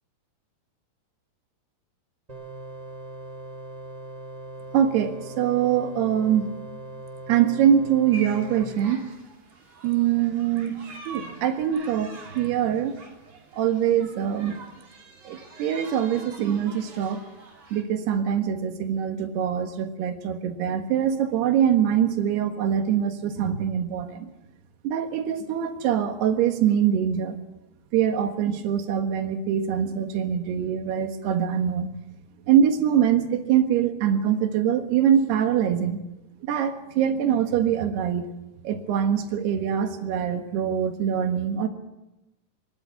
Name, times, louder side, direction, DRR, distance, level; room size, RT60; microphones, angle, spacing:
sound 1, 2.3-8.6, right 2 dB, 10° right, 2.2 m, -40 dB
voice 1, 4.7-6.5 7.3-9.1 9.8-13.0 13.5-14.6 15.3-17.2 17.7-24.3 24.8-27.4 27.9-31.9 32.5-36.0 36.4-38.3 38.7-41.7, right 9 dB, 85° right, 7 dB, 3.6 m, -23 dB
sound 2, 8.1-17.8, right 3 dB, 40° right, 4.2 m, -45 dB
23.0 x 12.5 x 9.4 m, 0.99 s
omnidirectional pair, 4.6 m